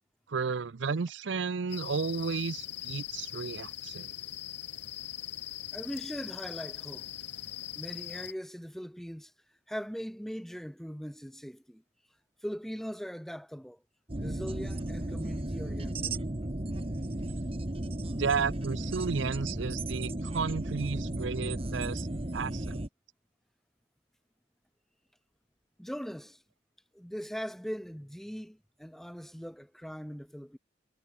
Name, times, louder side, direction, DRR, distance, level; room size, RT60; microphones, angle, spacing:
voice 1, 0.3-4.1 18.2-22.1 22.3-22.8, right 5 dB, 80° right, 0.6 m, -33 dB
sound 1, 1.7-8.3, left 13 dB, 65° left, 3.6 m, -41 dB
voice 2, 5.7-7.1 7.7-9.3 9.7-11.8 12.4-13.8 14.2-16.2 25.8-26.4 26.9-30.6, equal, ahead, 1.5 m, -40 dB
sound 2, 14.1-22.9, right 1 dB, 30° right, 1.2 m, -34 dB
head